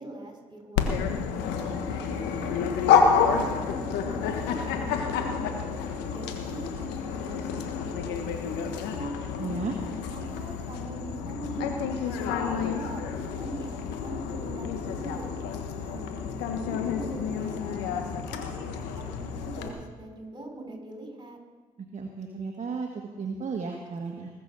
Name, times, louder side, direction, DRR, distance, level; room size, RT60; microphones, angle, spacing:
voice 1, 0.0-2.5 3.1-5.5 6.1-9.1 10.1-13.0 13.3-15.3 15.8-18.7 18.9-21.4, right 2 dB, 25° right, 2 dB, 4.4 m, -42 dB
Dog, 0.8-19.7, left 6 dB, 80° left, 1.3 m, -29 dB
voice 2, 9.4-9.8 21.9-24.3, right 5 dB, 45° right, 2 dB, 1.6 m, -34 dB
20.5 x 7.0 x 6.8 m, 1.4 s
hypercardioid pair, 45°, 17 cm